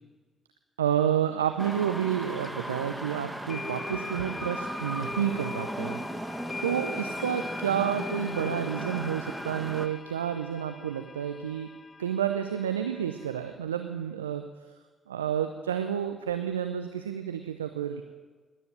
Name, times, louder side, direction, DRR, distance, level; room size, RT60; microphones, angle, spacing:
voice 1, 0.8-6.4 6.6-11.7 12.0-14.4 15.1-18.0, right 9 dB, 85° right, 8 dB, 0.6 m, -30 dB
sound 1, 1.6-9.9, right 1 dB, 5° right, 1.7 m, -37 dB
sound 2, 2.4-2.5 3.5-13.6, left 4 dB, 30° left, 0.7 m, -41 dB
20.5 x 9.6 x 7.5 m, 1.4 s
figure-of-eight pair, 40°, 0 cm